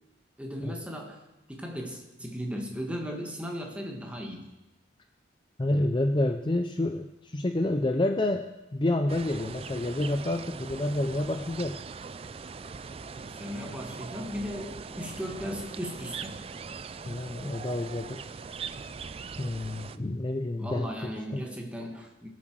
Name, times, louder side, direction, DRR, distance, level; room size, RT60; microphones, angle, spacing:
voice 1, 0.4-1.2 1.5-4.5 13.1-16.5 20.6-22.3, equal, 5° right, 1 dB, 1.6 m, -37 dB
voice 2, 5.6-11.8 17.1-18.3 19.4-21.4, left 1 dB, 25° left, 6 dB, 0.5 m, -29 dB
sound 1, 9.1-20.0, right 5 dB, 30° right, 0.4 m, -41 dB
21.5 x 7.5 x 4.7 m, 1.0 s
head